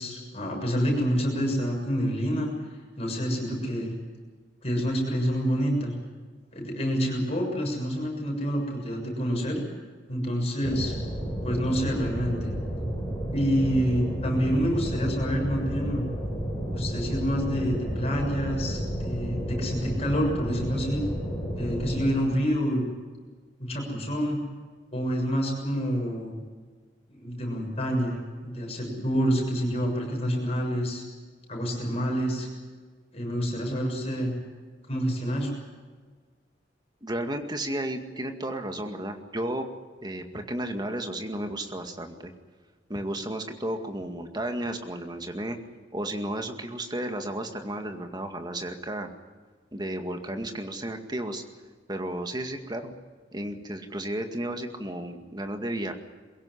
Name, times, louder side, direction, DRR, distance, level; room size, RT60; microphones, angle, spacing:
voice 1, 0.0-2.5 3.0-3.9 4.6-5.9 6.5-9.6 10.1-10.9 11.4-12.5 13.3-16.1 16.7-21.1 21.6-22.8 23.6-24.4 24.9-26.4 27.1-28.2 28.4-31.0 31.5-32.5 33.1-34.3 34.9-35.5, equal, 35° left, 1 dB, 6.9 m, -27 dB
sound 1, 10.6-22.1, equal, 15° left, 7.9 m, -32 dB
voice 2, 37.0-39.7 40.0-42.3 42.9-45.6 45.9-49.1 49.7-51.4 51.9-52.9 53.3-55.9, right 1 dB, 25° right, 5 dB, 2.1 m, -33 dB
23.0 x 16.5 x 9.9 m, 1.5 s
head